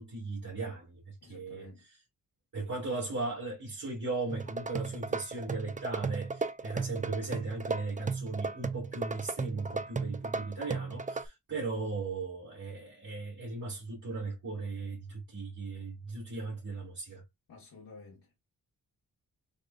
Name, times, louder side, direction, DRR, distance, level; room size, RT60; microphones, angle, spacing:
voice 1, 0.0-1.7 2.5-17.2, right 3 dB, 60° right, 2.3 m, -37 dB
voice 2, 1.2-1.8 17.5-18.4, left 3 dB, 75° left, 1.3 m, -52 dB
sound 1, 4.3-11.3, right 4 dB, 20° right, 0.5 m, -35 dB
6.6 x 2.3 x 2.3 m
cardioid pair, 70°, 35 cm